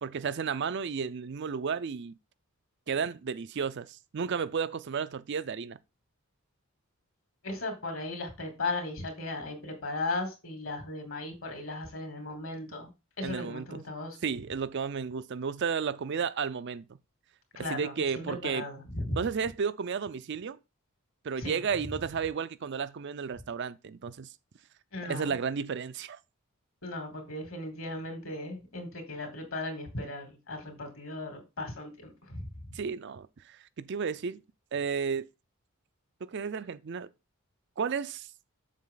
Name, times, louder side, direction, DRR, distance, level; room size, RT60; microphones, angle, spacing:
voice 1, 0.0-2.1 2.9-5.8 13.2-13.8 14.2-16.8 17.6-18.6 19.1-20.6 21.2-24.3 25.1-26.2 32.7-34.4 34.7-35.3 36.3-37.1 37.8-38.3, right 6 dB, 55° right, 0.4 m, -33 dB
voice 2, 7.4-12.9 13.2-14.2 17.5-19.2 21.4-21.6 24.9-25.4 26.8-32.7, left 2 dB, 65° left, 2.9 m, -37 dB
7.4 x 6.5 x 3.9 m
head